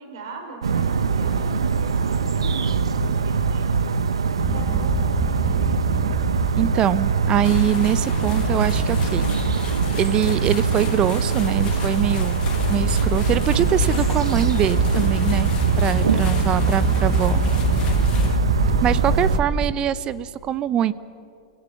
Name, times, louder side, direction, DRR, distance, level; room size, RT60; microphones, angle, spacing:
voice 1, 0.0-3.9 4.4-5.6 19.2-19.5, right 3 dB, 65° right, 3 dB, 5.3 m, -41 dB
sound 1, 0.6-19.4, right 5 dB, 85° right, 1.0 m, -23 dB
sound 2, 4.4-19.7, right 1 dB, 10° right, 1.2 m, -26 dB
voice 2, 6.6-9.6 10.0-12.4 12.7-15.5 15.8-17.4 18.8-20.9, right 10 dB, 30° right, 16 dB, 0.9 m, -23 dB
sound 3, 7.4-18.4, left 9 dB, 35° left, 2.5 m, -39 dB
30.0 x 17.5 x 7.3 m, 2.5 s
hypercardioid pair, 105°, 3 cm